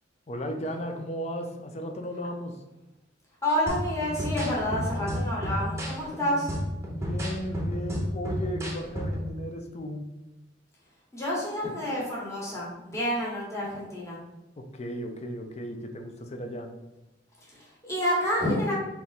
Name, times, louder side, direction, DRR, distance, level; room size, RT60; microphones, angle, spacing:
voice 1, 0.3-2.6 6.8-10.1 14.6-16.7, equal, 35° left, 5 dB, 0.5 m, -35 dB
voice 2, 3.4-6.5 11.1-14.2 17.5-18.7, equal, 15° left, -5 dB, 1.3 m, -29 dB
sound 1, 3.7-9.3, equal, 15° right, 0.8 m, -32 dB
3.5 x 2.9 x 4.1 m, 0.97 s
head